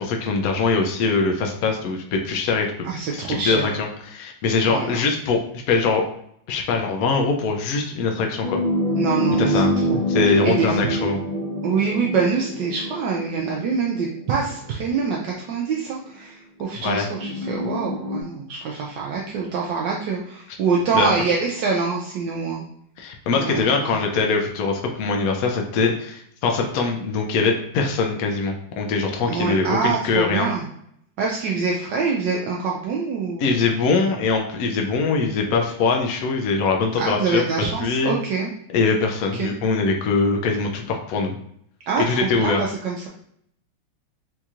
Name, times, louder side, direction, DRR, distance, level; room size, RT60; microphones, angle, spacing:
voice 1, 0.0-2.7 3.1-5.4 5.7-6.0 6.5-8.6 9.4-11.2 16.8-17.1 20.9-21.1 23.0-30.5 33.4-37.4 37.8-38.1 38.7-41.4 42.0-42.6, left 4 dB, 90° left, 2 dB, 0.7 m, -22 dB
voice 2, 2.8-3.7 4.6-5.0 8.9-9.6 9.9-10.0 10.2-10.8 11.6-22.6 23.3-23.9 29.3-30.6 31.2-33.5 37.0-38.5 39.3-39.5 41.9-43.1, right 5 dB, 75° right, -2 dB, 1.1 m, -25 dB
sound 1, 8.4-14.3 15.2-15.3 17.1-18.2, equal, 55° left, 0.4 m, -25 dB
4.4 x 2.9 x 2.4 m, 0.69 s
omnidirectional pair, 2.2 m